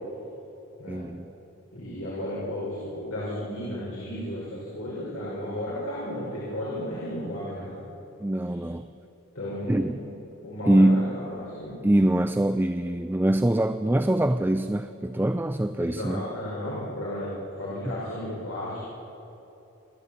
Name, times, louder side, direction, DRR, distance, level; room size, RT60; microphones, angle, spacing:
voice 1, 0.9-1.3 8.2-8.9 9.7-10.0 10.7-11.2 11.8-16.2, right 1 dB, 10° right, 10 dB, 0.4 m, -23 dB
voice 2, 1.7-7.7 8.5-8.6 9.3-10.1 10.4-11.8 15.8-18.8, left 1 dB, 85° left, -7 dB, 5.8 m, -34 dB
28.5 x 12.0 x 8.5 m, 3.0 s
head